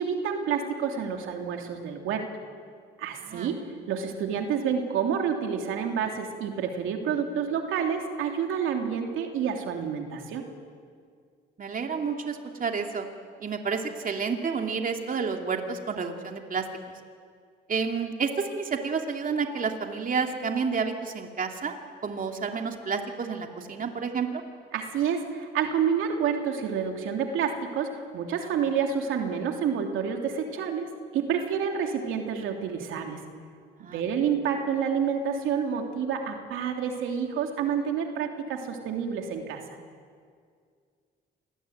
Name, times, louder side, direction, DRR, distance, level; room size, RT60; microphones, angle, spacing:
voice 1, 0.0-2.3 3.0-3.6 3.9-10.4 24.7-33.2 33.8-39.6, right 7 dB, 90° right, 3 dB, 2.9 m, -29 dB
voice 2, 3.2-3.5 11.6-13.1 13.4-16.6 17.7-21.7 22.0-24.4 33.8-34.0, right 5 dB, 45° right, 3 dB, 2.8 m, -30 dB
27.0 x 20.0 x 9.3 m, 2.1 s
cardioid pair, 90°, 20 cm